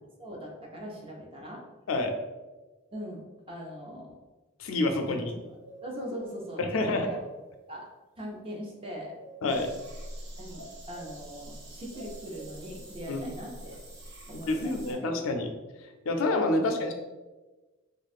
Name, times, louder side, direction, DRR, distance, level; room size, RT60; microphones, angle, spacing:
voice 1, 0.2-1.6 2.9-4.2 5.0-5.4 5.8-7.2 7.7-7.9 8.2-9.1 10.4-13.8 14.3-15.1 16.4-16.9, equal, 25° right, -2 dB, 0.6 m, -41 dB
voice 2, 4.6-5.3 6.7-7.1 9.4-9.7 13.1-13.3 14.5-15.5 16.1-16.9, left 2 dB, 85° left, 5 dB, 0.5 m, -27 dB
sound 1, 5.4-6.0 6.4-6.5 6.7-7.5 8.8-9.6 10.5-11.3 11.9-12.6, right 1 dB, 90° right, 0.6 m, -49 dB
sound 2, 9.5-14.9, right 1 dB, 55° right, 0.8 m, -46 dB
2.6 x 2.4 x 4.1 m, 1.2 s
head